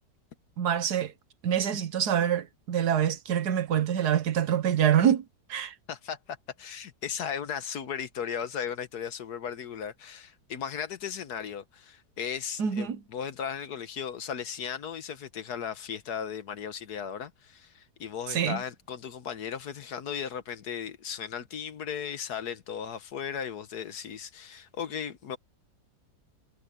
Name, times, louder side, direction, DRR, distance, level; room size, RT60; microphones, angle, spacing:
voice 1, 0.6-1.1 1.4-5.2 5.5-5.7 12.6-13.0 18.3-18.6, right 9 dB, 70° right, 1.6 m, -25 dB
voice 2, 5.9-25.4, left 8 dB, 70° left, 1.6 m, -36 dB
omnidirectional pair, 1.8 m